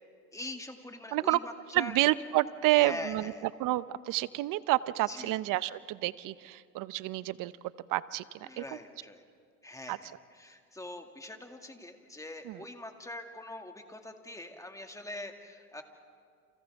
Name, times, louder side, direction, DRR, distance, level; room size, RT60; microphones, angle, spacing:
voice 1, 0.3-2.0 2.7-3.4 5.1-5.4 8.4-9.2 9.6-15.8, left 2 dB, 5° left, 4 dB, 2.2 m, -43 dB
voice 2, 1.7-3.3 3.6-7.5 7.9-8.2 8.6-8.7 9.9-10.0 12.4-12.6, right 17 dB, 50° right, 17 dB, 0.7 m, -29 dB
30.0 x 29.0 x 3.6 m, 2.2 s
hypercardioid pair, 95°, 43 cm